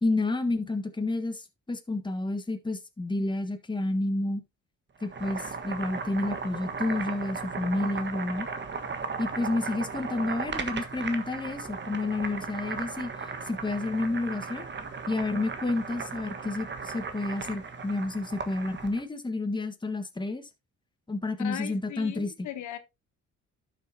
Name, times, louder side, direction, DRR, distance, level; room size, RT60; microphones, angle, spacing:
voice 1, 0.0-4.4 5.0-8.5 9.2-14.6 15.1-20.5 21.1-22.5, left 2 dB, 15° left, 1.5 m, -30 dB
Boiling, 5.0-19.0, right 5 dB, 35° right, 1.5 m, -36 dB
voice 2, 21.4-22.8, left 12 dB, 75° left, 1.1 m, -38 dB
11.5 x 6.6 x 2.8 m
cardioid pair, 90°, 30 cm